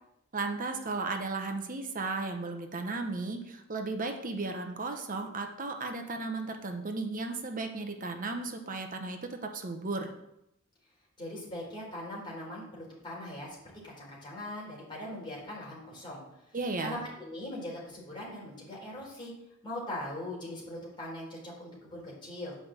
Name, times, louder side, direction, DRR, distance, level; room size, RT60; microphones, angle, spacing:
voice 1, 0.3-10.1 16.5-17.0, right 3 dB, 40° right, 4 dB, 1.0 m, -35 dB
voice 2, 11.2-13.6 13.8-16.2 16.8-19.3 19.6-22.6, left 1 dB, 25° left, -5 dB, 4.1 m, -40 dB
8.5 x 5.2 x 7.6 m, 0.82 s
head